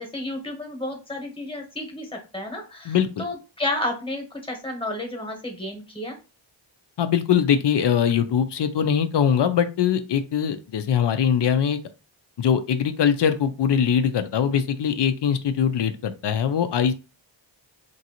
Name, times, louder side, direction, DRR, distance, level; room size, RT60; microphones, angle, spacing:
voice 1, 0.0-2.1 2.3-6.2, left 1 dB, 10° left, 2 dB, 1.1 m, -31 dB
voice 2, 2.8-3.2 7.0-11.8 12.4-16.9, left 8 dB, 60° left, 9 dB, 0.5 m, -22 dB
2.9 x 2.6 x 2.8 m, 0.30 s
wide cardioid pair, 70°, 47 cm